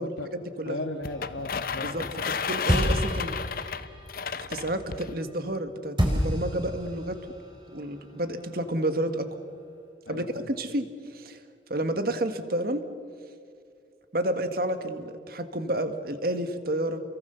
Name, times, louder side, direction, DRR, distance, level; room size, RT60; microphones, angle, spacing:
voice 1, 0.0-0.8 1.8-2.1 2.5-3.4 4.5-7.2 7.7-9.3 10.1-10.9 11.1-11.4 11.7-12.8 14.1-17.0, right 1 dB, 50° right, 9 dB, 1.6 m, -30 dB
voice 2, 0.6-2.0 10.1-10.5, left 2 dB, 85° left, 3 dB, 1.6 m, -36 dB
sound 1, 1.0-5.1, left 6 dB, 50° left, 0.7 m, -33 dB
sound 2, 1.1-5.6 6.0-9.4, equal, 25° right, 4.6 m, -32 dB
29.5 x 23.0 x 6.9 m, 2.3 s
head